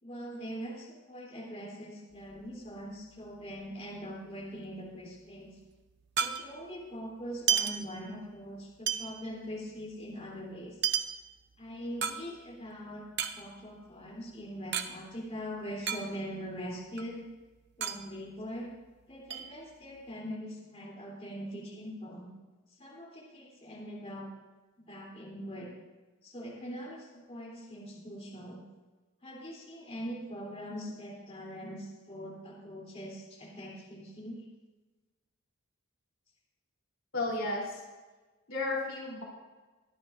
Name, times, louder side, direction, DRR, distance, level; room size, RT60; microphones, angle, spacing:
voice 1, 0.0-5.5 6.2-10.8 11.6-13.1 13.4-17.2 17.8-18.7 19.1-22.3 22.8-24.3 24.8-25.7 26.2-28.6 29.2-34.4, equal, 30° left, -4 dB, 3.2 m, -42 dB
sound 1, 2.1-3.8 4.1-4.2 4.4-6.8 7.3-8.5 8.9-12.7 13.0-14.9 15.2-15.3 15.5-16.5 16.9-18.9 19.3-20.1, right 8 dB, 50° right, 0.8 m, -34 dB
voice 2, 37.1-37.8 38.5-39.2, left 2 dB, 65° left, -3 dB, 3.4 m, -33 dB
24.0 x 10.5 x 2.6 m, 1.2 s
head